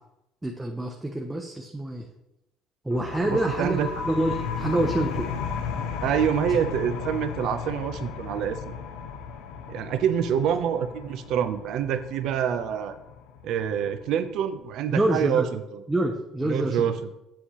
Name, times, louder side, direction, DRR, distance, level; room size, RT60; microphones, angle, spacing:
voice 1, 0.4-2.1 2.8-5.3 14.9-15.4 15.9-16.9, right 1 dB, 10° right, 1 dB, 0.5 m, -26 dB
sound 1, 2.9-14.3, left 6 dB, 85° left, 0.8 m, -35 dB
voice 2, 3.3-3.9 6.0-8.8 9.7-13.0 13.4-15.8 16.5-17.0, right 8 dB, 60° right, 10 dB, 0.6 m, -26 dB
8.2 x 7.5 x 3.0 m, 0.89 s
cardioid pair, 160°, 0 cm